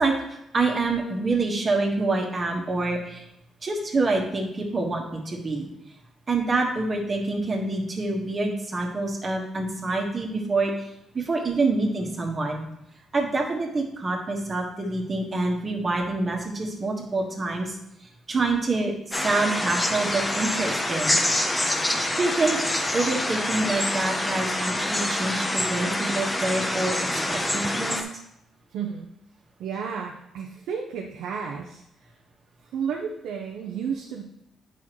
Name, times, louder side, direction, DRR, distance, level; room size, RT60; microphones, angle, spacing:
voice 1, 0.0-3.3 3.6-5.7 6.3-10.7 11.1-12.6 13.1-17.8 18.3-21.2 22.2-22.6 22.9-28.0, right 3 dB, 35° right, 0 dB, 1.5 m, -26 dB
sound 1, 19.1-28.0, left 1 dB, 15° left, 0.8 m, -26 dB
voice 2, 28.7-29.1 29.6-32.1 32.6-34.2, right 6 dB, 85° right, 1 dB, 0.7 m, -32 dB
8.5 x 5.6 x 3.1 m, 0.80 s
cardioid pair, 90°, 0 cm